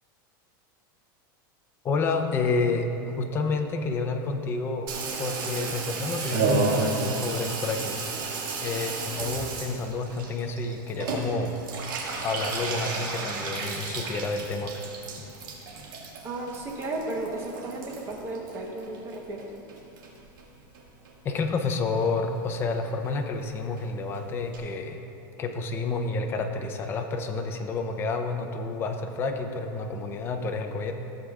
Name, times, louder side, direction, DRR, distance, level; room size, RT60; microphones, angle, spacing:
voice 1, 1.8-2.9 3.2-4.9 5.2-8.0 8.6-11.5 12.2-14.8 21.2-25.0 25.4-30.9, left 3 dB, 20° left, 5 dB, 0.6 m, -29 dB
Water tap faucet / Bathtub (filling or washing), 4.9-19.4 19.7-20.4 20.7-20.8 21.0-21.1 21.4-21.7 22.0-22.1 22.4-22.5 22.7-22.8 23.0-23.1 23.4-23.5 23.8-23.9 24.1-24.2 24.5-24.6, right 4 dB, 65° right, 1.9 m, -32 dB
voice 2, 16.2-19.5, right 2 dB, 20° right, 0 dB, 1.0 m, -34 dB
14.5 x 7.7 x 2.4 m, 3.0 s
supercardioid pair, 165°, 12 cm